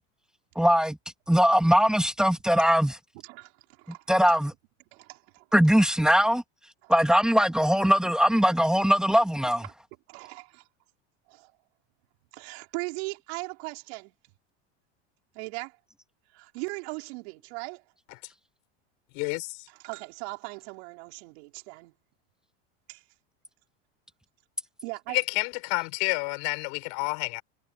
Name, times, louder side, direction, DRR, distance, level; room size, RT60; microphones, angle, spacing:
voice 1, 0.6-1.0 1.3-2.9 4.1-4.5 5.5-6.4 6.9-9.6, equal, ahead, 2.3 m, -21 dB
voice 2, 3.1-4.4 4.9-5.5 6.8-6.9 9.6-9.7 10.1-10.7 11.3-11.5 12.3-14.1 15.3-15.8 16.3-17.9 19.7-21.9 22.9-23.0 24.8-25.2, right 30 dB, 70° right, 5.2 m, -39 dB
voice 3, 19.1-19.6 25.1-27.4, left 33 dB, 65° left, 6.0 m, -29 dB
supercardioid pair, 120°, 33 cm